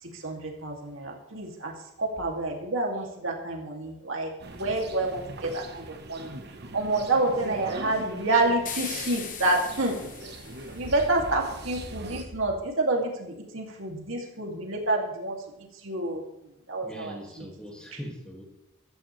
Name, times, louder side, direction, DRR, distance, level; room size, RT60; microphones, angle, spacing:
voice 1, 0.0-6.3 6.7-10.0 10.7-16.2 16.7-17.5, right 2 dB, 70° right, 0 dB, 2.8 m, -28 dB
sound 1, 4.4-12.2, right 2 dB, 50° right, 1.3 m, -41 dB
sound 2, 8.6-11.0, left 8 dB, 40° left, 1.1 m, -39 dB
voice 2, 16.7-18.4, equal, 5° left, -1 dB, 2.5 m, -41 dB
14.5 x 13.5 x 3.4 m, 0.87 s
head